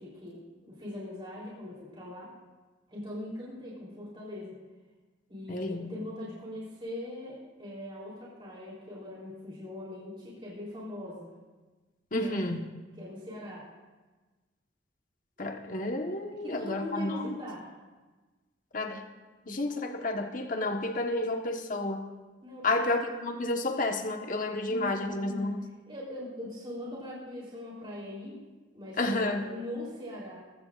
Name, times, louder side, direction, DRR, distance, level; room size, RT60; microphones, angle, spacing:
voice 1, 0.0-2.3 2.9-4.5 5.3-11.3 12.2-12.4 12.9-13.6 16.4-17.7 22.4-23.0 24.7-25.5 25.9-28.4 28.7-30.4, left 1 dB, 25° right, -6 dB, 3.6 m, -41 dB
voice 2, 5.5-5.9 12.1-12.6 15.4-17.3 18.7-19.0 19.5-22.0 22.6-25.6 29.0-29.5, left 2 dB, 40° left, 3 dB, 1.3 m, -31 dB
22.5 x 15.0 x 2.5 m, 1.3 s
head